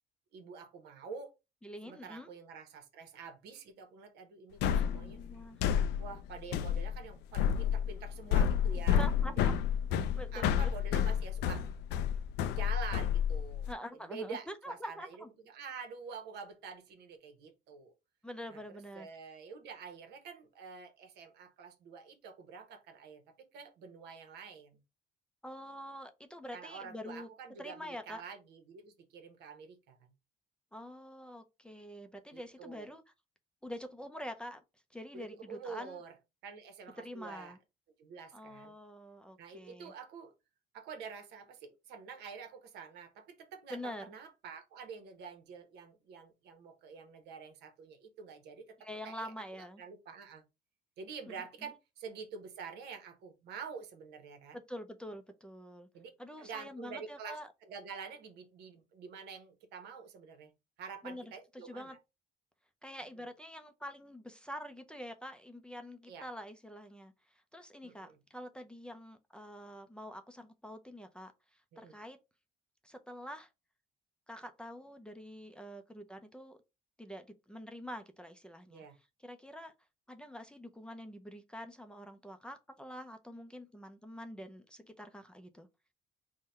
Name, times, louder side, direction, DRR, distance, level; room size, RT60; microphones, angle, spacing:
voice 1, 0.3-1.3 1.8-5.2 6.0-9.1 9.4-9.5 10.3-11.7 12.5-13.7 14.0-15.2 15.4-17.9 18.5-18.6 18.9-23.2 23.5-24.8 26.5-30.1 32.3-32.9 35.1-36.1 36.4-37.6 38.0-38.8 39.4-40.3 40.7-48.8 49.0-49.3 49.6-50.4 51.0-54.6 55.9-56.1 56.4-60.5 60.8-62.0 63.2-63.3 66.1-66.3 67.8-68.2 71.7-71.9 78.7-78.9, right 5 dB, 80° right, 0.9 m, -47 dB
voice 2, 1.6-2.3 4.7-5.6 8.9-9.6 10.2-10.7 13.7-15.3 18.2-19.1 25.4-27.3 27.6-28.2 30.7-33.0 33.6-34.6 34.9-36.0 37.0-37.6 38.3-39.9 43.7-44.1 48.8-49.8 51.3-51.4 54.5-55.9 56.2-57.5 61.0-62.0 62.8-72.2 72.8-73.5 74.3-76.6 77.0-78.8 79.2-79.7 80.1-85.7, equal, 5° left, 0.5 m, -46 dB
sound 1, 4.6-13.7, left 8 dB, 85° left, 0.4 m, -30 dB
3.7 x 2.2 x 4.1 m
cardioid pair, 110°, 17 cm